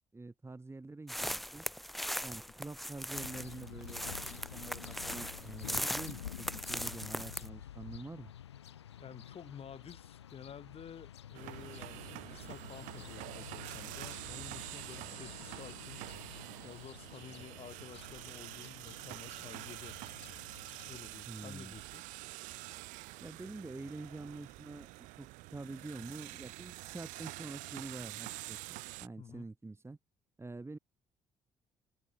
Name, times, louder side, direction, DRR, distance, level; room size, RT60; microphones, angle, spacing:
voice 1, 0.1-1.7 2.2-8.3 21.3-21.8 23.2-30.0 30.4-30.8, right 3 dB, 20° right, 4.5 m, -46 dB
sound 1, 1.1-7.5, equal, ahead, 2.9 m, -39 dB
sound 2, 3.1-21.0, left 10 dB, 80° left, 7.1 m, -50 dB
voice 2, 5.6-6.0 9.0-16.0 16.6-20.0 20.8-22.0 29.2-29.5, left 8 dB, 45° left, 7.2 m, -51 dB
sound 3, 11.3-29.1, right 23 dB, 65° right, 4.4 m, -47 dB
figure-of-eight pair, 45°, 14 cm